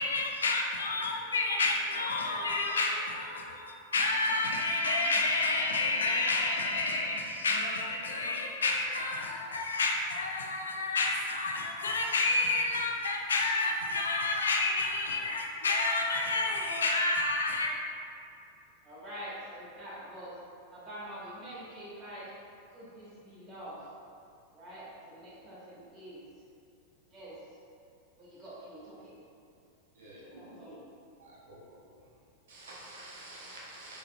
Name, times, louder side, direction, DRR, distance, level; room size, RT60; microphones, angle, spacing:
voice 1, 0.0-17.7, left 3 dB, 70° left, 1 dB, 0.3 m, -29 dB
voice 2, 18.8-20.3 20.7-22.3 22.7-23.9 24.5-26.2 27.1-27.4 28.2-29.1 30.0-30.8, equal, 25° right, -9 dB, 1.2 m, -46 dB
voice 3, 30.0-30.7 31.2-32.0 32.5-34.0, right 1 dB, 65° right, -6 dB, 0.7 m, -49 dB
3.4 x 2.9 x 2.2 m, 2.5 s
figure-of-eight pair, 90°, 0 cm